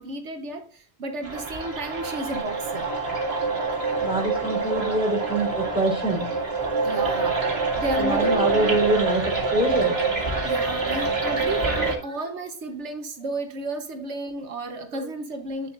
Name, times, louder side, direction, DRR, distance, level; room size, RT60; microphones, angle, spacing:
voice 1, 0.0-2.9 6.8-7.5 7.8-8.8 10.4-15.7, right 2 dB, 80° right, 1.5 m, -32 dB
sound 1, 1.2-12.0, right 3 dB, 60° right, 2.5 m, -26 dB
voice 2, 4.0-6.3 8.0-10.0 12.0-12.1, right 1 dB, 5° right, 3.8 m, -25 dB
8.9 x 7.2 x 2.5 m
omnidirectional pair, 1.2 m